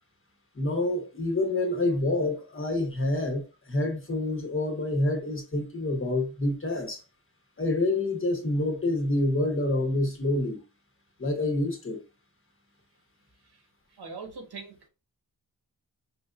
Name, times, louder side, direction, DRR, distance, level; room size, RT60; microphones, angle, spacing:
voice 1, 0.5-7.0 7.6-10.6 11.2-12.0, left 2 dB, 35° left, 1.1 m, -27 dB
voice 2, 13.9-14.9, right 4 dB, 85° right, 1.3 m, -42 dB
4.8 x 2.6 x 2.4 m
cardioid pair, 70°, 38 cm